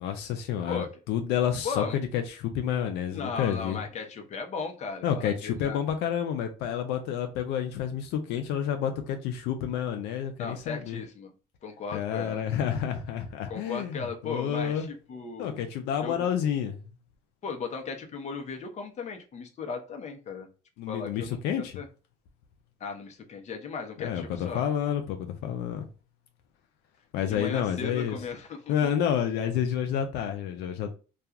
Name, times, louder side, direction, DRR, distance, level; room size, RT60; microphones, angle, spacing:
voice 1, 0.0-3.8 5.0-11.0 11.9-14.9 15.4-16.8 20.8-21.7 24.0-25.9 27.1-28.2 28.7-31.0, left 9 dB, 90° left, 0.4 m, -29 dB
voice 2, 1.6-2.0 3.1-5.8 10.4-11.3 11.6-12.4 13.5-15.6 16.0-16.3 17.4-20.5 20.9-21.9 22.8-24.6 27.3-28.9, left 5 dB, 45° left, 0.7 m, -36 dB
2.4 x 2.3 x 2.8 m
cardioid pair, 110°, 17 cm